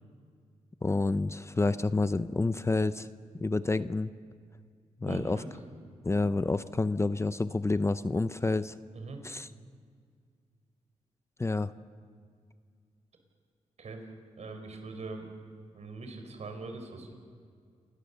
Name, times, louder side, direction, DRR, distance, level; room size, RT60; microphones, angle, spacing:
voice 1, 0.8-3.1 3.4-4.1 5.0-5.4 6.0-8.8 9.2-9.5 11.4-11.7, left 3 dB, 20° left, 13 dB, 0.6 m, -28 dB
voice 2, 5.0-5.5 8.9-9.2 13.8-14.0 14.4-15.3 15.7-17.1, right 3 dB, 65° right, 6 dB, 4.3 m, -41 dB
28.0 x 18.0 x 6.9 m, 2.1 s
cardioid pair, 85°, 13 cm